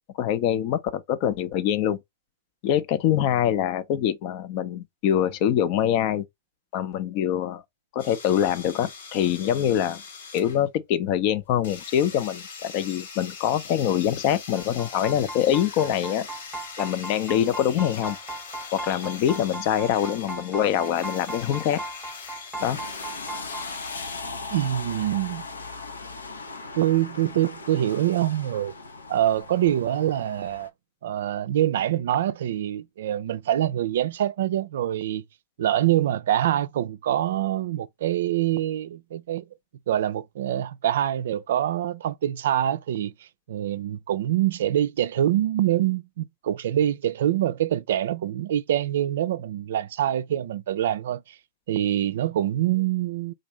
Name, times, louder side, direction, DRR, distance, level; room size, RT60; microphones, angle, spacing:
voice 1, 0.2-2.0 2.6-6.2 6.7-7.6 7.9-10.0 10.3-16.3 16.8-18.2 18.7-21.8 22.6-22.8, left 10 dB, 50° left, 0.6 m, -24 dB
sound 1, 8.0-10.6 11.6-24.2, left 5 dB, 70° left, 1.6 m, -41 dB
sound 2, 14.6-23.7, right 2 dB, 10° right, 0.8 m, -38 dB
sound 3, 22.6-30.7, left 3 dB, 85° left, 0.8 m, -38 dB
voice 2, 24.5-25.4 26.7-28.7 29.1-30.7 31.0-35.2 35.6-39.4 39.9-43.1 43.5-51.4 51.7-53.3, right 12 dB, 65° right, 0.3 m, -25 dB
3.9 x 2.6 x 3.0 m
hypercardioid pair, 105°, 0 cm